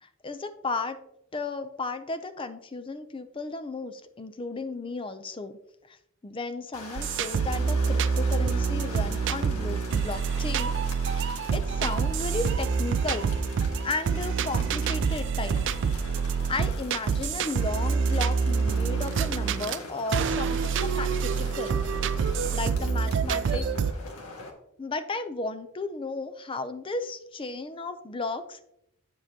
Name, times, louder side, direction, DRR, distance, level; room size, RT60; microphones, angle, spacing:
voice 1, 0.0-1.0 1.3-5.6 5.9-6.0 6.2-10.7 11.1-13.3 13.8-15.6 16.5-21.8 22.3-23.7 24.8-28.7, left 3 dB, 25° left, 10 dB, 0.4 m, -34 dB
sound 1, 6.7-24.5, left 2 dB, 90° left, 1.5 m, -43 dB
sound 2, 7.0-19.8 20.1-23.9, right 5 dB, 55° right, 0.4 m, -27 dB
8.8 x 7.4 x 2.8 m, 0.79 s
head